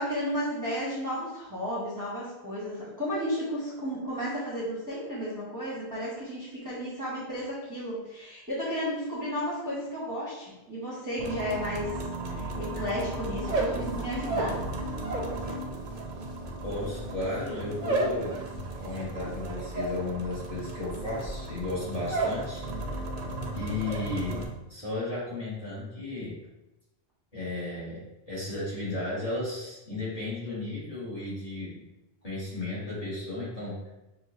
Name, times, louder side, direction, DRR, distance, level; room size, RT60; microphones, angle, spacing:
voice 1, 0.0-12.0 12.3-14.6 15.4-15.5, equal, 20° right, -8 dB, 0.9 m, -33 dB
sound 1, 11.2-24.5, right 2 dB, 80° right, 0.9 m, -37 dB
sound 2, 13.3-15.4 15.7-22.5 22.8-23.3 23.5-24.1, right 2 dB, 45° right, 0.7 m, -33 dB
voice 2, 16.6-18.4 18.8-22.6 23.5-26.4 27.3-31.8 32.2-33.9, left 2 dB, 35° left, -9 dB, 1.5 m, -34 dB
5.6 x 2.3 x 2.5 m, 0.96 s
omnidirectional pair, 1.1 m